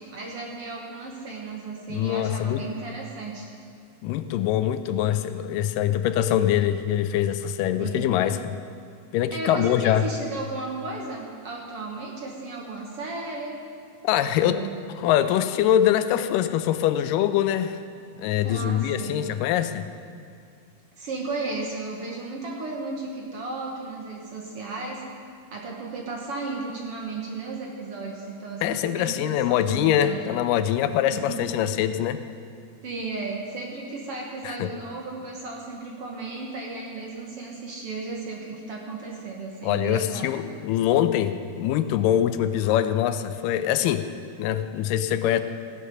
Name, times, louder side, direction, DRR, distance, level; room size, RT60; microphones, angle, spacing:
voice 1, 0.1-3.5 7.8-8.1 9.3-13.5 14.2-14.7 18.4-19.2 21.0-25.0 25.5-30.3 31.0-31.4 32.8-40.4, right 3 dB, 55° right, -1 dB, 1.8 m, -34 dB
voice 2, 1.9-2.7 4.0-8.5 9.1-10.1 14.0-14.6 15.0-17.8 18.2-19.9 28.6-32.2 34.4-34.7 39.6-44.1 44.4-45.4, left 11 dB, 85° left, 11 dB, 2.2 m, -23 dB
16.0 x 10.0 x 5.5 m, 2.3 s
omnidirectional pair, 3.8 m